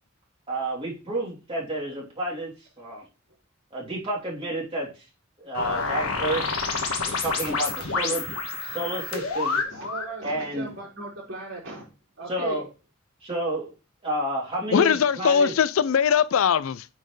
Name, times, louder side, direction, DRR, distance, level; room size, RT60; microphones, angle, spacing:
voice 1, 0.5-2.5 2.8-3.0 3.7-5.0 5.4-6.6 7.0-8.2 8.6-9.6 10.2-10.7 12.3-12.6 13.2-13.7 14.0-15.5, right 1 dB, 25° right, 3.0 m, -30 dB
sound 1, 5.5-10.1, left 4 dB, 90° left, 1.5 m, -28 dB
voice 2, 9.7-11.9 12.2-12.6, right 3 dB, 60° right, 4.2 m, -37 dB
voice 3, 14.7-16.8, left 7 dB, 75° left, 0.4 m, -21 dB
8.9 x 4.4 x 3.2 m
head